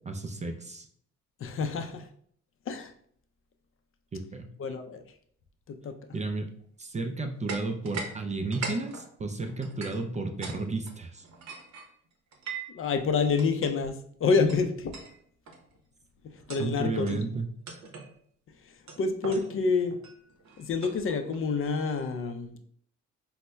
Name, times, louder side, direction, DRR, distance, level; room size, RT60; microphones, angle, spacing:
voice 1, 0.1-0.9 4.1-4.5 6.1-6.5 6.8-11.2 16.6-17.5, right 3 dB, 25° right, 5 dB, 0.3 m, -33 dB
voice 2, 1.4-2.1 2.7-2.9 4.6-5.0 5.7-6.0 12.7-14.9 16.2-17.2 18.6-20.0 20.6-22.6, left 4 dB, 45° left, 7 dB, 0.4 m, -28 dB
sound 1, 7.5-8.1 8.4-10.6 10.9-12.8 13.4-13.7 14.5-14.6 14.9-15.1 15.5-15.8 16.3-16.7 17.1-17.2 17.7-18.1 18.9-21.4, right 4 dB, 65° right, 0.8 m, -40 dB
5.3 x 2.0 x 2.2 m, 0.62 s
cardioid pair, 90°, 30 cm